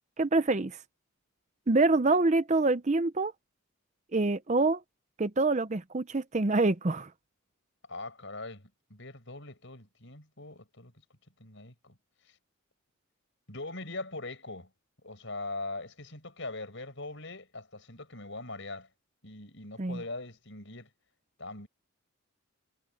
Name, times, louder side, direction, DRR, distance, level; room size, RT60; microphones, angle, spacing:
voice 1, 0.2-0.8 1.7-3.3 4.1-4.8 5.2-7.1 19.8-20.0, right 3 dB, 30° right, 0.6 m, -26 dB
voice 2, 7.9-10.9 11.4-12.0 12.2-12.4 13.5-14.7 15.0-18.9 19.2-20.9 21.4-21.7, left 2 dB, 55° left, 7.0 m, -41 dB
head